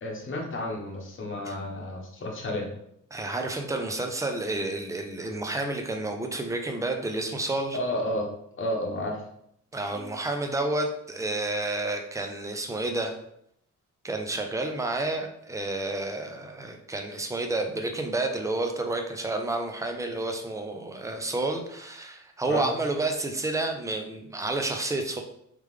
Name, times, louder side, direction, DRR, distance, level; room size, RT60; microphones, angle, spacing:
voice 1, 0.0-2.7 7.7-8.3 8.6-9.2 22.5-22.7, left 1 dB, 45° left, 0 dB, 1.0 m, -31 dB
voice 2, 3.1-7.8 9.7-13.1 14.0-25.2, right 2 dB, 10° right, 4 dB, 0.5 m, -30 dB
3.7 x 3.3 x 3.2 m, 0.73 s
cardioid pair, 110°, 30 cm